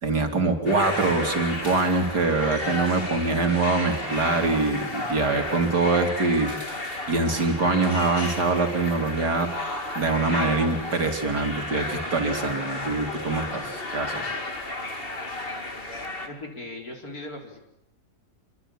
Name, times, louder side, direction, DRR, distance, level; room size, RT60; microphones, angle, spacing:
voice 1, 0.0-6.5 7.1-9.5 10.0-14.3, right 3 dB, 60° right, 4 dB, 3.5 m, -24 dB
sound 1, 0.7-16.3, left 2 dB, 30° left, 2.9 m, -33 dB
voice 2, 16.2-17.6, left 2 dB, 50° left, 2 dB, 4.7 m, -38 dB
27.0 x 24.0 x 8.7 m, 0.81 s
omnidirectional pair, 2.0 m